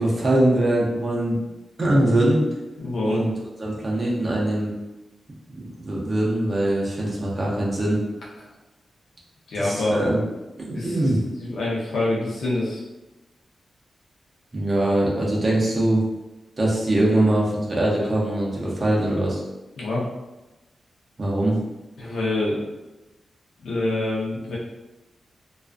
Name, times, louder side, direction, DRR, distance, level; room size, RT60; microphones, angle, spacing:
voice 1, 0.0-1.4 1.8-2.4 3.0-3.3 3.6-4.7 5.5-8.0 9.6-10.2 10.6-11.2 14.5-16.0 16.6-19.4 21.2-21.5, right 1 dB, 30° right, -4 dB, 0.5 m, -22 dB
voice 2, 2.8-3.2 9.5-10.0 10.7-11.1 11.4-12.8 19.8-20.0 22.0-22.6 23.6-24.6, left 2 dB, 75° left, -5 dB, 0.6 m, -26 dB
2.3 x 2.3 x 2.4 m, 1.0 s
wide cardioid pair, 165°, 0 cm